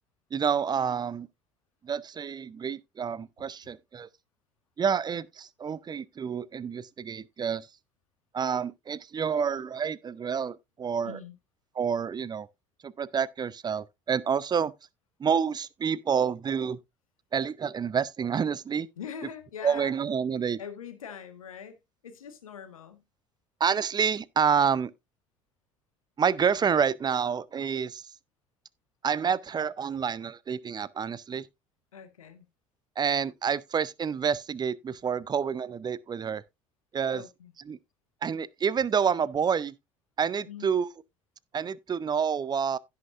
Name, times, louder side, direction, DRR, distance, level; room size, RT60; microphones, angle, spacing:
voice 1, 0.3-1.3 1.8-4.1 4.8-7.7 8.3-11.2 11.8-12.5 12.8-14.7 15.2-16.8 17.3-18.9 19.6-20.6 23.6-24.9 26.2-28.1 29.0-31.5 33.0-36.4 36.9-37.2 37.7-37.8 38.2-39.7 40.2-40.9 41.5-42.8, right 7 dB, 25° right, 0.6 m, -28 dB
voice 2, 11.0-11.3 19.0-19.9 20.6-23.0 31.9-32.5 37.1-37.5 40.5-40.7, left 7 dB, 75° left, 1.5 m, -43 dB
16.0 x 5.8 x 2.5 m
figure-of-eight pair, 60°, 18 cm